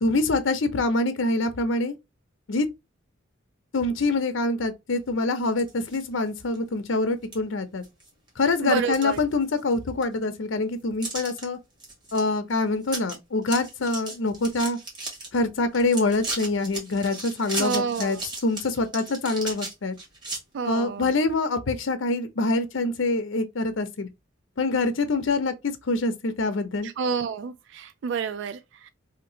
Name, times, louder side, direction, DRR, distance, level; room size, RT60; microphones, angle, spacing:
voice 1, 0.0-1.9 2.5-2.7 3.7-7.8 8.4-11.6 12.1-14.8 15.3-19.9 20.6-24.1 24.6-26.9, left 2 dB, 75° left, 0.6 m, -25 dB
sound 1, 5.5-6.1 6.5-6.6 7.3-7.4 7.8-8.3 8.7-9.7 10.0-10.1 11.0-11.4 11.8-12.2 12.5-12.6 12.8-13.2 13.4-15.3 15.7-20.4, right 2 dB, 25° right, 1.8 m, -35 dB
voice 2, 8.6-9.2 17.6-18.2 20.5-21.1 26.8-28.9, right 6 dB, 65° right, 0.3 m, -29 dB
3.2 x 2.9 x 2.7 m
head